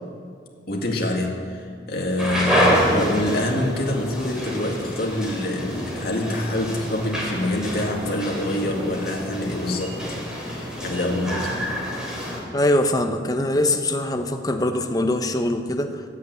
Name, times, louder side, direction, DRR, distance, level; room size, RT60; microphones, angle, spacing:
voice 1, 0.7-10.0 10.4-11.5, left 1 dB, 55° left, 0 dB, 2.0 m, -26 dB
sound 1, 2.2-12.4, equal, 5° right, 2.7 m, -27 dB
voice 2, 12.5-16.0, left 1 dB, 20° left, 6 dB, 0.8 m, -22 dB
11.5 x 8.4 x 9.3 m, 2.2 s
head